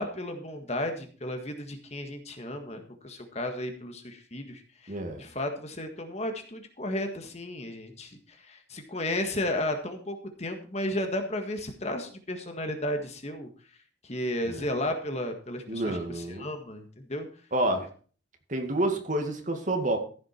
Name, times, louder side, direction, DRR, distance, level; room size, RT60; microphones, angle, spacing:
voice 1, 0.0-13.5 14.0-17.3, left 1 dB, 35° left, 6 dB, 1.7 m, -34 dB
voice 2, 4.9-5.2 14.5-14.7 15.7-16.5 17.5-17.9 18.5-20.0, right 1 dB, 40° right, 5 dB, 2.1 m, -29 dB
15.0 x 7.6 x 4.4 m, 0.41 s
head